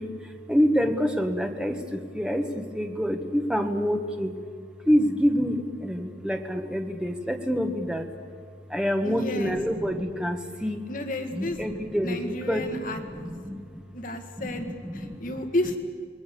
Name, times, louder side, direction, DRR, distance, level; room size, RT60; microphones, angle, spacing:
voice 1, 0.0-4.3 4.8-8.1 8.7-10.8 11.3-13.8 14.4-15.3, equal, 5° right, 4 dB, 1.5 m, -27 dB
voice 2, 9.0-9.6 10.9-11.6 12.0-13.3 13.9-14.7 14.9-15.8, left 1 dB, 45° left, 5 dB, 1.8 m, -31 dB
28.0 x 21.5 x 6.9 m, 2.2 s
head